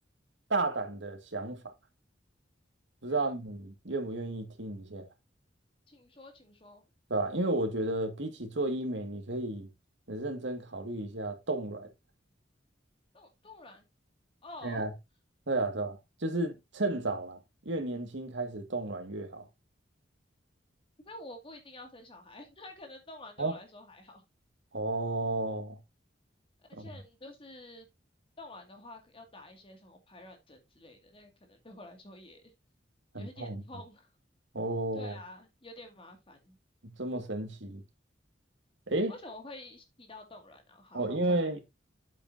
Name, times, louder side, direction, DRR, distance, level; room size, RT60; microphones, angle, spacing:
voice 1, 0.5-1.6 3.0-5.1 7.1-9.7 10.1-11.9 14.6-14.9 15.5-17.4 17.7-19.4 23.4-23.5 24.7-25.8 26.8-26.9 33.1-33.6 34.5-35.1 36.8-37.8 38.9-39.1 40.9-41.6, right 2 dB, 75° right, 1.9 m, -32 dB
voice 2, 5.9-6.8 13.1-13.8 14.4-14.9 21.0-24.2 26.6-27.9 28.4-32.5 33.1-34.1 34.9-36.6 39.1-41.2, left 2 dB, 30° left, 2.1 m, -49 dB
8.4 x 8.1 x 2.7 m
head